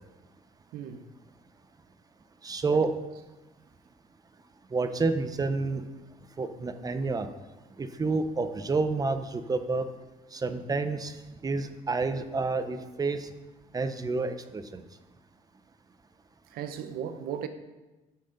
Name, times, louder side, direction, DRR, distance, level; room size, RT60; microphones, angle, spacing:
voice 1, 0.7-1.1 16.5-17.5, right 8 dB, 75° right, 0.9 m, -36 dB
voice 2, 2.4-2.9 4.7-5.8 6.4-7.3 7.8-9.8 10.3-11.1 11.4-13.3 13.7-14.8, right 3 dB, 25° right, 0.7 m, -29 dB
10.5 x 7.5 x 4.0 m
cardioid pair, 100°, 16 cm